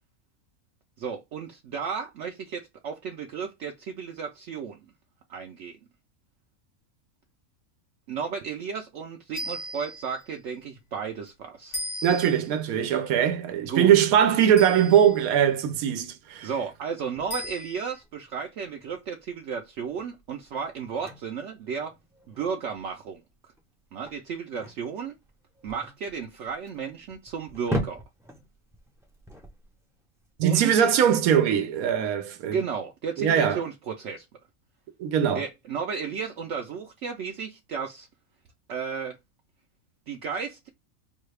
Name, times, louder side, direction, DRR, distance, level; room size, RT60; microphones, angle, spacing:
voice 1, 1.0-4.8 5.3-5.8 8.1-11.8 13.7-14.1 16.4-21.9 22.3-23.2 23.9-25.2 25.6-28.0 30.4-30.8 32.5-34.3 35.3-38.1 38.7-39.2 40.1-40.7, right 6 dB, 65° right, 0.8 m, -33 dB
sound 1, 9.3-10.2 11.7-12.6 14.6-15.3 17.3-18.0, equal, 85° left, 2.5 m, -37 dB
voice 2, 12.0-16.5 30.4-32.6 33.2-33.6 35.0-35.4, right 9 dB, 85° right, 1.1 m, -21 dB
sound 2, 17.1-30.3, equal, 5° right, 0.4 m, -40 dB
5.4 x 2.3 x 3.2 m
omnidirectional pair, 1.5 m